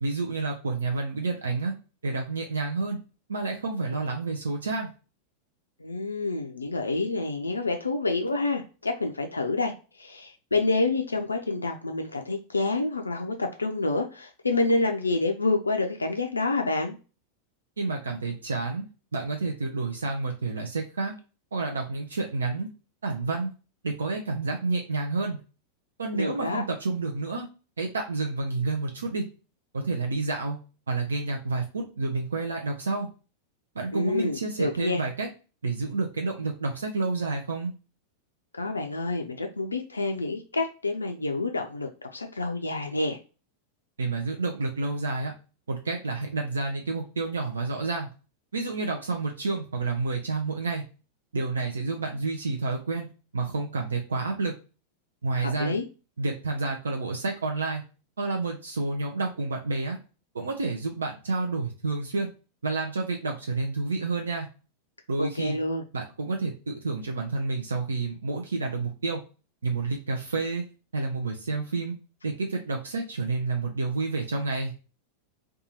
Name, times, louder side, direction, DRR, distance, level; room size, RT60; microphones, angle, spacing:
voice 1, 0.0-1.7 2.0-3.0 3.3-4.9 17.8-18.8 19.1-21.1 21.5-22.7 23.0-23.5 23.8-25.4 26.0-27.5 27.8-29.3 29.7-30.6 30.9-33.1 33.7-35.3 35.6-37.7 44.0-45.3 45.7-48.1 48.5-50.8 51.3-53.1 53.3-54.5 55.2-55.7 56.2-57.8 58.2-60.0 60.3-62.3 62.6-64.5 65.1-65.6 65.9-69.2 69.6-70.6 70.9-71.9 72.2-74.7, right 3 dB, 70° right, 2 dB, 0.4 m, -29 dB
voice 2, 5.8-17.0 26.1-26.6 33.9-35.0 38.6-43.2 55.4-55.8 65.2-65.8, left 2 dB, 80° left, 4 dB, 0.3 m, -28 dB
2.6 x 2.3 x 2.7 m, 0.33 s
figure-of-eight pair, 90°, 0 cm